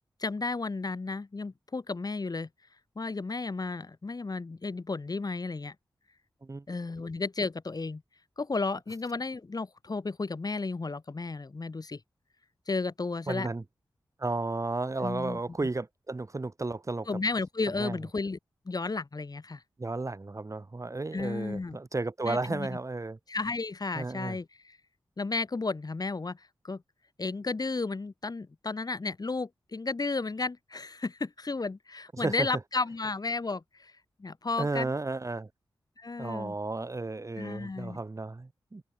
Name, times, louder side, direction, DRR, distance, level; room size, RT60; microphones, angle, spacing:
voice 1, 0.2-2.5 3.0-5.7 6.7-8.0 8.4-12.0 12.7-13.5 15.0-15.6 17.1-18.4 18.6-19.6 21.1-21.8 22.3-22.8 23.3-24.8 25.2-26.8 27.2-33.9 34.2-34.9 36.0-36.5 37.4-38.0, left 3 dB, 50° left, 4.4 m, -33 dB
voice 2, 13.3-13.6 14.2-17.1 17.8-18.0 19.8-23.2 24.0-24.4 32.2-32.5 34.6-35.5 36.2-38.8, right 3 dB, 35° right, 2.1 m, -33 dB
cardioid pair, 45°, 9 cm